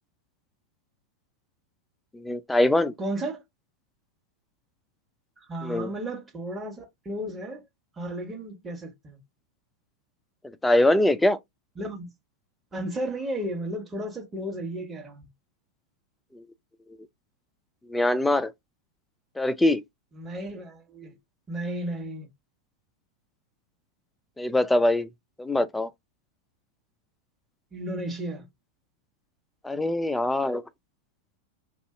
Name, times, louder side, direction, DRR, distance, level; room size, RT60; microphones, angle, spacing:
voice 1, 2.1-2.9 5.6-5.9 10.6-11.4 17.9-18.5 19.4-19.8 24.4-25.1 25.4-25.9 29.6-30.6, left 1 dB, 5° left, 0.4 m, -23 dB
voice 2, 3.0-3.4 5.4-7.6 8.0-9.2 11.8-12.1 12.7-15.2 20.1-21.2 21.5-22.3 27.7-28.5, right 1 dB, 15° right, 1.2 m, -34 dB
2.6 x 2.3 x 3.7 m
figure-of-eight pair, 90°, 0 cm